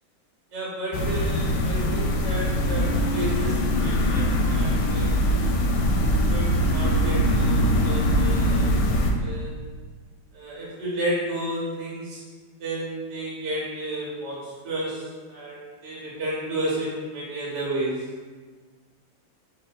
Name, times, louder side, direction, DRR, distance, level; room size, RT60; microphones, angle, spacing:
voice 1, 0.5-5.6 6.3-9.6 10.3-12.2 12.6-18.1, right 1 dB, 65° right, -6 dB, 1.5 m, -32 dB
sound 1, 0.9-9.1, equal, 70° left, 1.0 m, -22 dB
4.6 x 2.7 x 3.9 m, 1.5 s
omnidirectional pair, 2.1 m